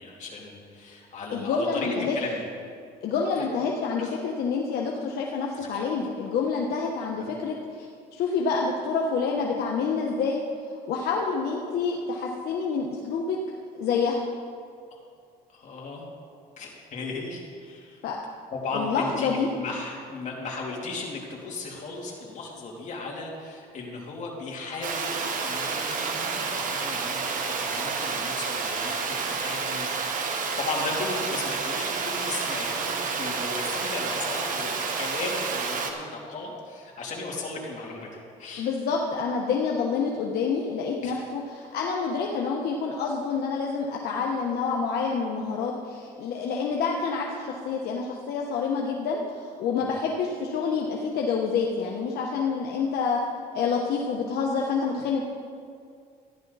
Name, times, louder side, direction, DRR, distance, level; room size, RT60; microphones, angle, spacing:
voice 1, 0.0-2.4 3.4-3.5 4.0-4.1 5.5-5.8 14.9-15.0 15.5-16.1 16.6-18.0 18.5-30.3 30.6-38.1 38.4-38.7 41.0-41.3 49.8-50.0, left 3 dB, 45° left, -2 dB, 3.0 m, -36 dB
voice 2, 1.3-2.2 3.0-10.4 10.8-13.4 13.7-14.2 18.0-18.2 18.7-19.5 38.6-53.2 53.5-55.2, left 5 dB, 70° left, 0 dB, 1.1 m, -28 dB
Water, 24.8-35.9, right 5 dB, 50° right, 1.3 m, -29 dB
14.5 x 10.5 x 4.1 m, 2.3 s
cardioid pair, 110°, 17 cm